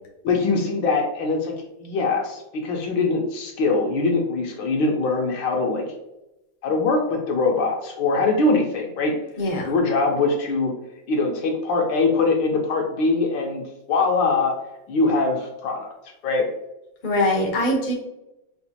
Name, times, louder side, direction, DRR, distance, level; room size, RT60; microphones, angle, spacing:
voice 1, 0.2-1.5 1.8-5.8 6.6-9.1 9.6-10.7 11.1-14.6 14.9-15.9 16.2-16.5, left 3 dB, 75° left, 0 dB, 1.3 m, -22 dB
voice 2, 9.4-9.7 17.0-17.9, left 1 dB, 60° left, -2 dB, 0.5 m, -22 dB
5.0 x 2.4 x 2.7 m, 0.92 s
omnidirectional pair, 2.2 m